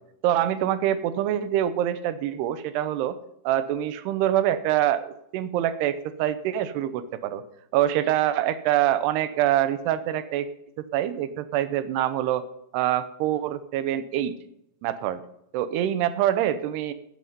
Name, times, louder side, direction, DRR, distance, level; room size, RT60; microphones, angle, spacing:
voice 1, 0.2-3.2 3.4-7.4 7.7-10.5 10.9-12.5 12.7-14.3 14.8-15.2 15.5-16.9, right 12 dB, 85° right, 12 dB, 2.8 m, -25 dB
14.5 x 9.4 x 5.4 m, 0.78 s
omnidirectional pair, 4.8 m